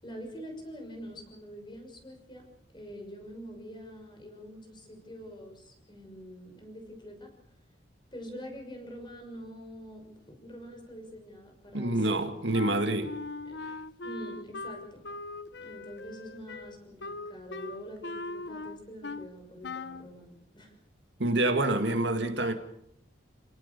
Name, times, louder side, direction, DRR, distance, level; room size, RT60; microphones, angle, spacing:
voice 1, 0.0-2.5 2.7-7.3 8.1-12.2 13.4-15.1 15.5-20.7, equal, 25° left, 6.2 m, -45 dB
voice 2, 11.7-13.2 21.2-22.5, right 2 dB, 65° right, 2.2 m, -27 dB
Wind instrument woodwind instrument, 12.5-19.3 19.6-20.1, left 3 dB, 60° left, 0.9 m, -40 dB
29.5 x 18.0 x 6.9 m
head